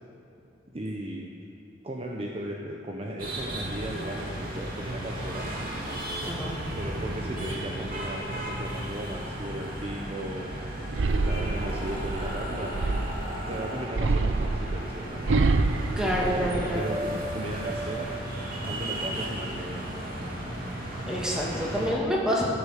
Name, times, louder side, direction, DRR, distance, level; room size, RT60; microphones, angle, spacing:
voice 1, 0.7-1.3 1.8-5.7 6.7-10.6 11.2-12.8 13.5-15.3 16.1-18.1 18.6-20.0, right 1 dB, 35° right, -1 dB, 1.0 m, -36 dB
sound 1, 3.2-21.9, right 1 dB, 50° right, 2.6 m, -34 dB
sound 2, 10.9-13.3 13.9-17.0 17.4-18.0, right 3 dB, 90° right, 0.6 m, -27 dB
voice 2, 16.0-16.8 21.1-22.4, equal, 5° right, -4 dB, 2.4 m, -27 dB
14.0 x 8.5 x 6.6 m, 2.7 s
head